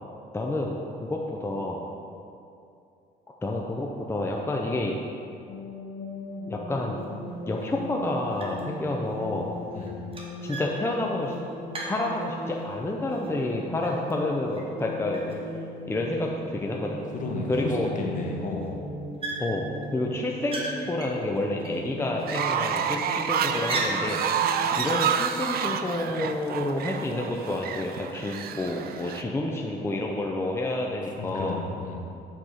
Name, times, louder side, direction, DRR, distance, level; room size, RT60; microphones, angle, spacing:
voice 1, 0.3-1.8 3.4-5.0 6.5-7.0 7.5-9.5 10.4-11.4 11.9-15.4 15.9-17.0 17.5-17.9 19.4-19.6 19.9-31.6, left 2 dB, 15° left, -1 dB, 0.6 m, -29 dB
sound 1, 5.5-24.7, left 1 dB, 80° left, 1.5 m, -39 dB
sound 2, 7.0-7.1 7.6-8.0 8.3-8.8 9.1-12.7 13.1-14.8 15.1-16.1 16.7-16.8 17.0-17.1 17.5-18.2 18.5-18.7 19.2-19.8 20.2-21.9 22.3-23.1 23.5-24.5, right 2 dB, 30° right, 1.3 m, -38 dB
voice 2, 17.1-18.8 31.2-32.0, left 3 dB, 50° left, 0 dB, 1.3 m, -32 dB
Fowl, 22.2-29.2, right 7 dB, 60° right, 0.5 m, -29 dB
7.8 x 4.4 x 6.5 m, 2.6 s
cardioid pair, 110°, 18 cm